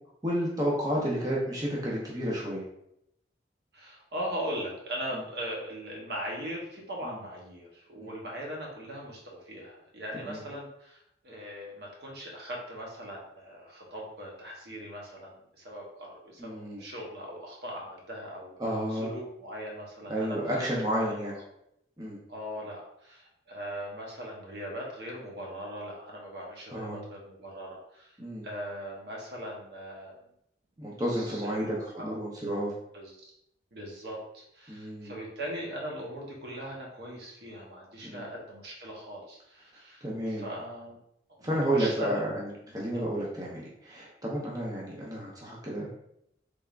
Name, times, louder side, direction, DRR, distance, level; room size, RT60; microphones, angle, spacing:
voice 1, 0.2-2.6 7.0-7.1 8.0-8.1 10.1-10.4 16.4-16.8 18.6-19.1 20.1-21.3 22.0-22.2 26.7-27.0 28.2-28.5 30.8-32.7 34.7-35.1 38.0-38.2 40.0-40.5 41.4-45.9, right 1 dB, 20° right, -5 dB, 0.7 m, -31 dB
voice 2, 3.7-18.5 18.9-20.5 21.0-21.3 22.3-28.2 28.4-30.1 31.2-32.2 32.9-33.1 33.7-41.0 41.4-42.2 42.9-43.0, equal, 70° right, -2 dB, 0.9 m, -40 dB
3.4 x 3.4 x 2.4 m, 0.76 s
head